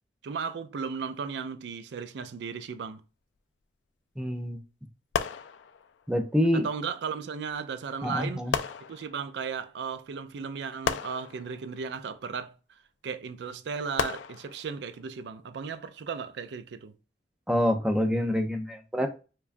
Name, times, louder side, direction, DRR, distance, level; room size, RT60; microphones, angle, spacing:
voice 1, 0.2-3.0 6.5-16.9, right 5 dB, 70° right, 0.4 m, -36 dB
voice 2, 4.2-4.6 6.1-6.7 8.0-8.5 17.5-19.2, equal, 5° right, 0.4 m, -26 dB
sound 1, 5.1-6.1 7.5-7.6 8.5-9.5 10.8-12.1 14.0-15.0 15.7-16.0, left 7 dB, 85° left, 0.3 m, -34 dB
4.6 x 2.3 x 2.5 m
head